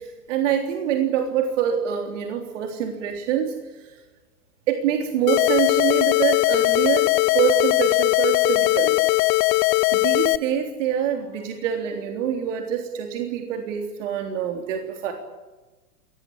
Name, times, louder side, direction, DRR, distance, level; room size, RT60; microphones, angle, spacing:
voice 1, 0.0-4.0 4.7-9.0 9.9-15.1, right 9 dB, 50° right, 4 dB, 3.6 m, -25 dB
sound 1, 5.3-10.4, left 22 dB, 30° left, 0.9 m, -19 dB
25.5 x 19.0 x 9.9 m, 1.2 s
figure-of-eight pair, 110°, 48 cm